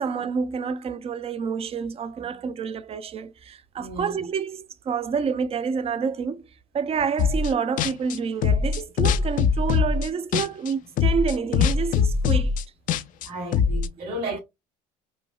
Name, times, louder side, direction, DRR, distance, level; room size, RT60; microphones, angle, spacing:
voice 1, 0.0-6.4 6.7-12.5, right 6 dB, 35° right, 0.6 m, -28 dB
voice 2, 3.8-4.1 13.2-14.4, right 1 dB, 60° right, 2.4 m, -33 dB
sound 1, 7.2-7.5 7.8-10.7 11.0-13.9, left 6 dB, 50° left, 0.4 m, -22 dB
5.1 x 2.0 x 2.4 m
supercardioid pair, 85°, 18 cm